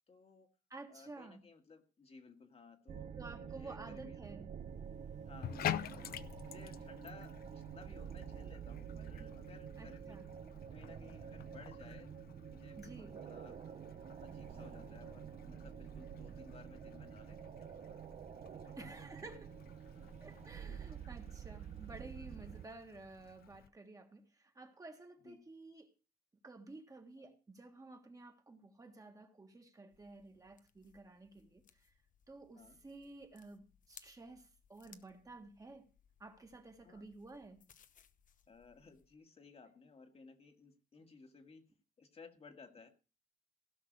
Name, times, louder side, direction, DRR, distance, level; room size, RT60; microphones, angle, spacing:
voice 1, 0.1-0.5 0.9-3.1 3.4-4.2 5.2-6.1 6.4-10.2 10.7-13.6 14.2-17.8 18.4-19.3 20.7-20.8 25.2-25.4 27.2-27.3 32.5-32.8 36.8-37.1 38.5-41.6 42.0-42.9, left 4 dB, 40° left, 1.7 m, -58 dB
voice 2, 0.7-1.4 3.2-4.5 9.8-10.3 12.8-13.2 18.8-19.5 20.2-25.9 26.4-31.9 32.3-35.9 36.2-37.6, right 2 dB, 20° right, 1.7 m, -53 dB
sound 1, 2.9-22.7, right 8 dB, 50° right, 0.6 m, -49 dB
Bathtub (filling or washing), 5.3-23.7, left 10 dB, 85° left, 0.6 m, -49 dB
sound 2, 29.9-39.2, left 8 dB, 60° left, 0.9 m, -66 dB
16.5 x 5.9 x 6.2 m
wide cardioid pair, 135°, 15 cm